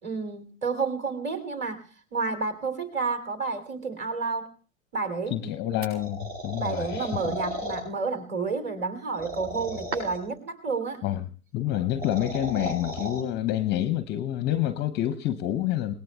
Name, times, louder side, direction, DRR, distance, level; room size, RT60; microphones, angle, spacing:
voice 1, 0.0-1.8 2.1-4.5 4.9-5.4 6.6-11.0, right 4 dB, 25° right, 7 dB, 3.0 m, -30 dB
voice 2, 5.3-7.3 11.0-11.2 11.5-15.9, left 12 dB, 25° left, 12 dB, 0.7 m, -28 dB
sound 1, 5.8-7.8 9.1-10.3 11.7-13.2, right 1 dB, 45° right, 7.0 m, -34 dB
30.0 x 19.0 x 2.3 m, 0.38 s
figure-of-eight pair, 90°, 40 cm